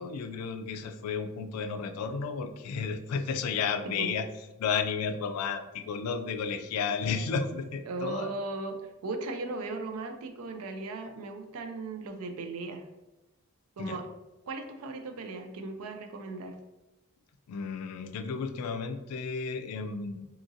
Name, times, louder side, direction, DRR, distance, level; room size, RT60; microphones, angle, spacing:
voice 1, 0.0-4.3 4.6-8.3 13.8-14.0 17.5-20.3, left 5 dB, 80° left, 11 dB, 0.3 m, -32 dB
voice 2, 7.9-12.8 13.8-14.0 14.5-16.6, right 3 dB, 75° right, 6 dB, 0.4 m, -37 dB
2.8 x 2.6 x 2.5 m, 1.0 s
head